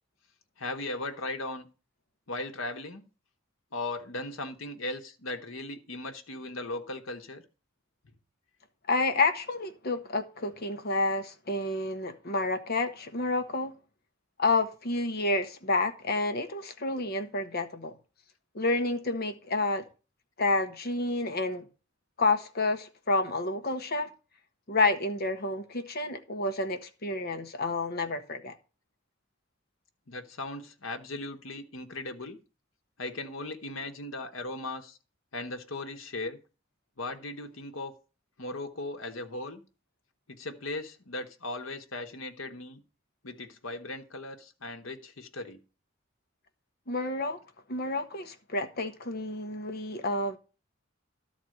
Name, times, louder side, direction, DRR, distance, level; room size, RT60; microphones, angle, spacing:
voice 1, 0.6-1.7 2.3-3.0 3.7-7.4 30.1-32.4 33.0-35.0 35.3-36.4 37.0-37.9 38.4-39.6 40.3-42.8 43.2-45.6, left 2 dB, 85° left, 1.3 m, -37 dB
voice 2, 8.9-13.7 14.4-17.9 18.5-19.8 20.4-21.7 22.2-24.1 24.7-28.5 46.9-47.4 47.7-50.4, left 2 dB, 50° left, 1.2 m, -29 dB
12.5 x 4.2 x 7.7 m
head